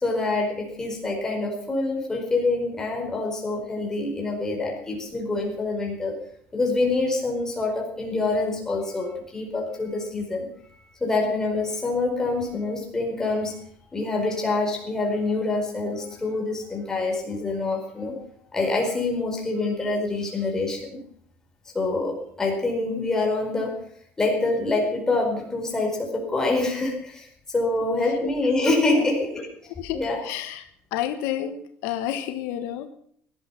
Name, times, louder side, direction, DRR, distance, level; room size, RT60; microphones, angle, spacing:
voice 1, 0.0-6.2 6.5-10.5 11.0-13.6 13.9-18.2 18.5-21.0 21.7-23.8 24.2-29.5 29.9-30.2, left 2 dB, 15° left, 0 dB, 4.8 m, -26 dB
voice 2, 29.8-30.6 30.9-32.9, left 11 dB, 80° left, 8 dB, 1.4 m, -30 dB
17.5 x 12.0 x 5.9 m, 0.62 s
cardioid pair, 150°, 4 cm